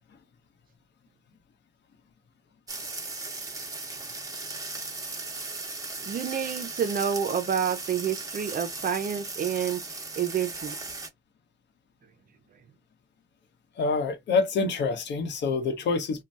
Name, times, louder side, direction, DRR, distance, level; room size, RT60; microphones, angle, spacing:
sound 1, 2.7-11.1, right 3 dB, 15° right, 1.0 m, -37 dB
voice 1, 6.0-9.8 10.2-10.8, right 8 dB, 45° right, 0.6 m, -28 dB
voice 2, 13.8-16.2, left 4 dB, 65° left, 0.9 m, -26 dB
2.6 x 2.2 x 3.3 m
cardioid pair, 90°, 20 cm